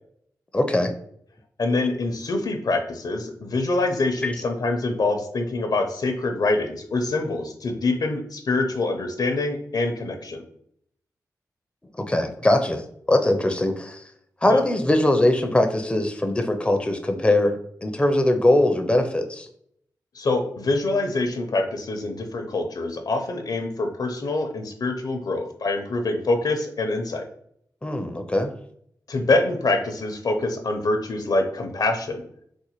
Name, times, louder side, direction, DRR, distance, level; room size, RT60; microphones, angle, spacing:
voice 1, 0.5-0.9 4.2-4.3 12.0-12.8 13.1-14.0 14.4-19.5 27.8-28.5, left 1 dB, 15° left, 6 dB, 0.5 m, -21 dB
voice 2, 1.6-10.4 14.5-14.6 20.2-27.3 29.1-32.2, left 2 dB, 65° left, 5 dB, 0.6 m, -25 dB
4.2 x 2.1 x 3.0 m, 0.67 s
cardioid pair, 45°, 7 cm